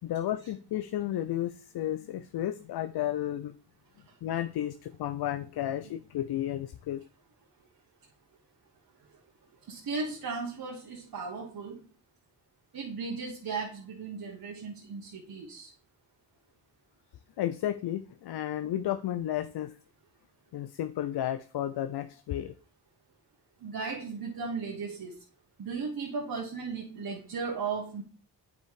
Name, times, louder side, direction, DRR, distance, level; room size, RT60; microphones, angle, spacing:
voice 1, 0.0-3.5 4.2-7.0 17.4-19.7 20.5-22.5, left 12 dB, 65° left, 12 dB, 0.6 m, -32 dB
voice 2, 9.7-11.8 12.7-15.7 23.6-25.1 25.6-28.0, right 4 dB, 55° right, 0 dB, 1.6 m, -36 dB
7.8 x 5.3 x 4.8 m, 0.39 s
cardioid pair, 60°, 42 cm